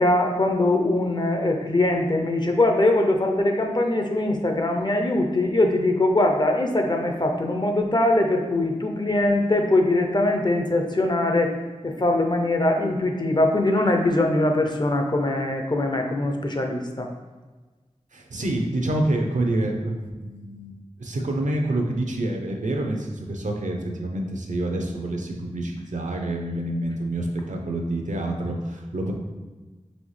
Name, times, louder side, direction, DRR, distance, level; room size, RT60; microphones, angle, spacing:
voice 1, 0.0-11.5 11.8-17.1, left 2 dB, 35° left, 3 dB, 0.5 m, -22 dB
voice 2, 18.1-29.1, right 1 dB, 80° right, 2 dB, 0.6 m, -27 dB
4.1 x 3.1 x 3.2 m, 1.3 s
wide cardioid pair, 50°, 13 cm